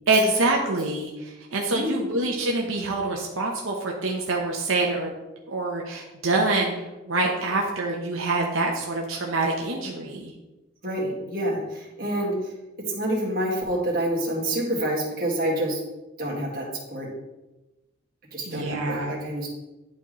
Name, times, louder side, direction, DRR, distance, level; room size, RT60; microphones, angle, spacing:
voice 1, 0.1-5.1 5.5-6.7 7.1-10.3 18.5-19.2, right 2 dB, 85° right, 0 dB, 0.9 m, -25 dB
voice 2, 10.8-12.5 12.8-15.8 16.2-17.1 18.3-19.5, right 1 dB, 45° right, -4 dB, 1.9 m, -27 dB
11.0 x 4.2 x 3.1 m, 1.0 s
head